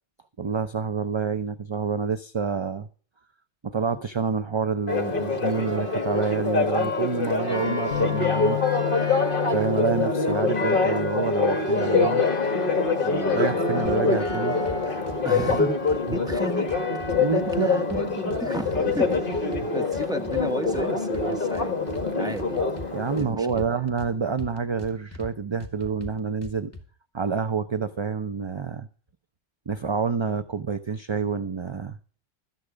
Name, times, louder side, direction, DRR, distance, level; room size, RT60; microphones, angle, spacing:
voice 1, 0.4-2.9 3.6-8.6 9.5-12.2 13.3-14.6 16.1-16.2 17.2-18.0 22.9-26.7 27.1-28.9 29.7-32.0, right 5 dB, 30° right, 10 dB, 0.5 m, -28 dB
Church bell, 4.9-23.2, left 3 dB, 50° left, 1.6 m, -25 dB
Bass guitar, 7.9-14.2, left 15 dB, 80° left, 1.3 m, -35 dB
voice 2, 13.0-13.6 15.2-16.7 17.3-21.8 22.2-22.7 23.1-23.8, equal, 5° right, 6 dB, 1.3 m, -33 dB
sound 1, 13.8-14.4 14.7-15.6 15.9-17.6 17.9-18.8 19.1-20.8 21.1-22.1 22.4-24.1 24.4-25.3 25.6-26.8, left 2 dB, 15° left, 2.2 m, -40 dB
13.0 x 10.0 x 5.0 m, 0.39 s
omnidirectional pair, 1.2 m